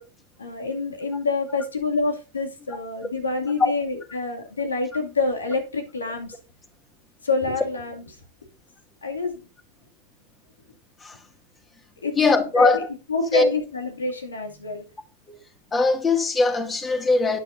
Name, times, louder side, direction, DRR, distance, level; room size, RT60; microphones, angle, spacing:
voice 1, 0.4-6.3 7.2-8.0 9.0-9.4 12.0-12.2 12.6-12.8 13.1-14.8, left 3 dB, 85° left, 2.4 m, -27 dB
voice 2, 12.1-12.9 13.3-13.5 15.3-15.4 15.7-17.4, left 3 dB, 20° left, 2.2 m, -20 dB
12.0 x 9.5 x 2.7 m
hypercardioid pair, 95°, 0 cm